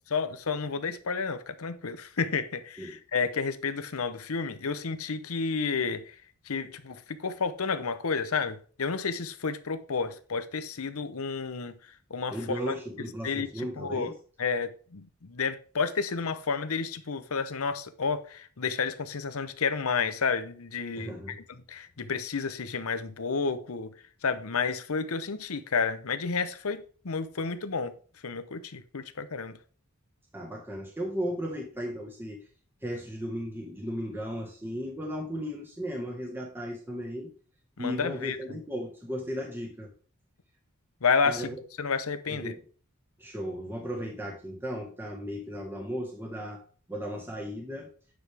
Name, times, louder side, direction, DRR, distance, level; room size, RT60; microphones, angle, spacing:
voice 1, 0.1-6.1 6.5-11.7 12.1-12.7 13.2-13.5 13.8-14.1 14.4-21.4 21.7-23.9 24.2-27.9 28.2-29.6 37.8-38.4 41.0-41.5 41.8-42.5, left 5 dB, 75° left, 0.8 m, -31 dB
voice 2, 12.3-14.1 21.0-21.4 30.3-32.4 32.8-37.3 37.8-39.9 41.2-41.5 42.3-42.6 43.2-46.6 46.9-47.9, equal, 10° right, 1.4 m, -35 dB
9.6 x 6.3 x 3.4 m
head